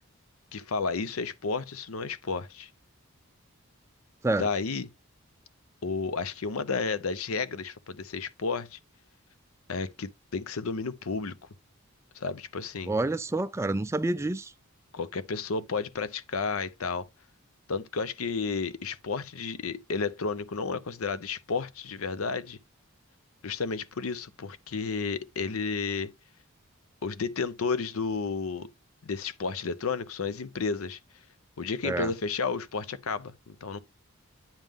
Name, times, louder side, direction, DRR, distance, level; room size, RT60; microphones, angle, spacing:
voice 1, 0.5-2.7 4.4-4.9 5.8-8.8 9.7-11.4 12.1-12.9 14.9-17.1 17.7-22.6 23.4-26.1 27.0-28.7 29.0-31.0 31.6-33.8, left 4 dB, 75° left, 0.7 m, -32 dB
voice 2, 12.9-14.5 31.8-32.1, right 2 dB, 15° right, 0.3 m, -28 dB
8.9 x 5.4 x 3.5 m
head